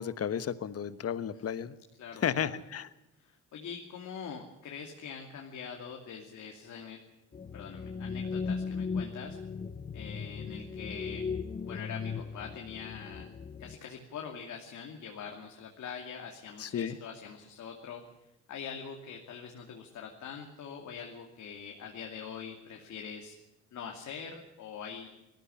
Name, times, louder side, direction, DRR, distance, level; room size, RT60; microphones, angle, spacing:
voice 1, 0.0-1.8 2.2-2.9 16.6-17.0, left 8 dB, 50° left, 14 dB, 1.3 m, -33 dB
voice 2, 2.0-2.5 3.2-7.0 7.5-9.4 9.9-11.2 11.7-13.3 13.6-18.0 18.5-23.4 23.7-25.1, left 6 dB, 70° left, 1 dB, 2.7 m, -43 dB
sound 1, 7.3-13.8, left 5 dB, 25° left, 0.8 m, -37 dB
19.0 x 14.5 x 9.9 m, 0.95 s
cardioid pair, 90°, 30 cm